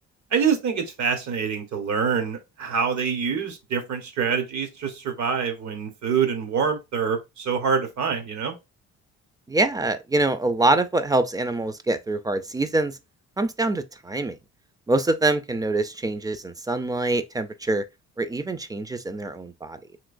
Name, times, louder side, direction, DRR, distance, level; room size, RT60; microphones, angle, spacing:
voice 1, 0.3-8.5, right 6 dB, 65° right, 1.0 m, -25 dB
voice 2, 9.5-13.0 13.4-14.4 14.9-17.8 18.2-19.8, right 2 dB, 15° right, 0.4 m, -24 dB
3.1 x 3.0 x 2.5 m
cardioid pair, 90°, 30 cm